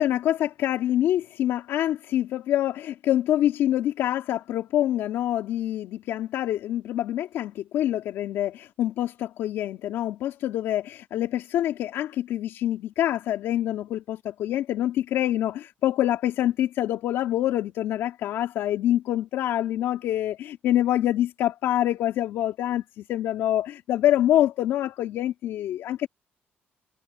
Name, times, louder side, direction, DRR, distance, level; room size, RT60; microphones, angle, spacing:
voice 1, 0.0-26.1, left 12 dB, 80° left, 2.8 m, -26 dB
cardioid pair, 145°, 4 cm